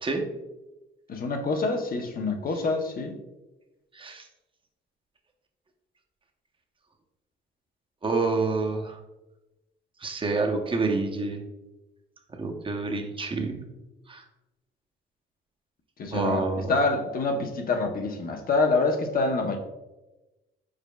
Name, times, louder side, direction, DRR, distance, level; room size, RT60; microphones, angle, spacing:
voice 1, 1.1-3.2 16.0-16.4 16.7-19.6, left 3 dB, 45° left, 4 dB, 0.7 m, -26 dB
voice 2, 3.9-4.3 8.0-9.0 10.0-11.4 12.4-13.7 14.1-14.2 16.1-16.7, right 3 dB, 25° right, 2 dB, 0.7 m, -28 dB
5.0 x 4.4 x 2.2 m, 1.0 s
cardioid pair, 90°, 20 cm